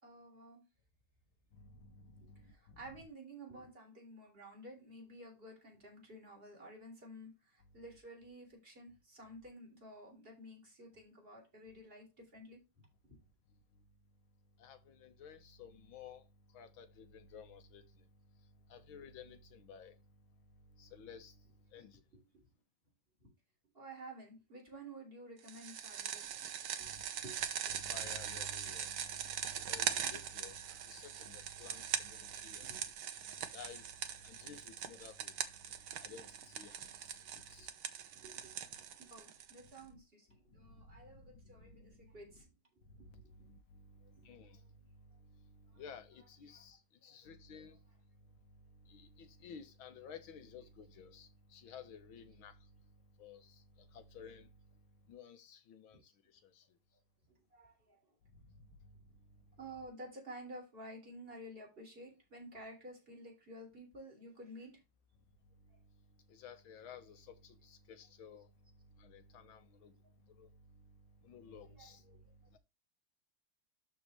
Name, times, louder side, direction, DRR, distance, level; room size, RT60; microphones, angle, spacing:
voice 1, 0.0-0.6 2.5-12.9 23.2-23.3 23.7-26.3 26.8-26.9 27.2-27.4 32.7-32.8 38.1-38.5 39.1-42.5 44.0-44.3 46.5-46.6 47.1-47.2 57.5-58.0 59.6-64.7 71.8-72.2, right 1 dB, 25° right, 3.7 m, -52 dB
voice 2, 1.5-3.1 14.6-16.2 16.5-17.8 18.7-20.0 20.8-21.4 21.7-22.0 26.8-27.0 27.7-32.9 33.3-33.9 34.2-35.3 36.0-37.1 37.5-37.7 39.9-40.0 40.6-41.8 43.0-44.6 45.4-47.8 48.9-52.6 53.2-53.6 53.9-54.5 55.1-56.1 56.4-56.6 58.6-58.7 66.3-68.5 69.0-69.9 70.3-70.5 71.2-72.0 72.5-72.6, left 5 dB, 80° left, 2.0 m, -54 dB
sound 1, 25.5-39.8, right 9 dB, 85° right, 1.8 m, -42 dB
12.5 x 4.3 x 3.1 m
omnidirectional pair, 2.2 m